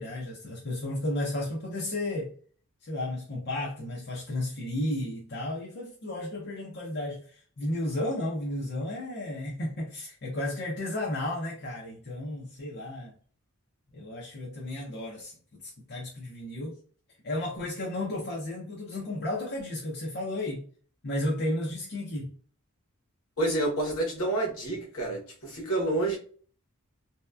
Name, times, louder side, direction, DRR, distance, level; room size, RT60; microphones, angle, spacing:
voice 1, 0.0-2.3 2.8-13.1 13.9-16.8 17.2-20.6 21.0-22.3, left 1 dB, 50° left, 0.6 m, -33 dB
voice 2, 23.4-26.2, right 2 dB, 75° left, 1.0 m, -28 dB
2.7 x 2.1 x 2.3 m
head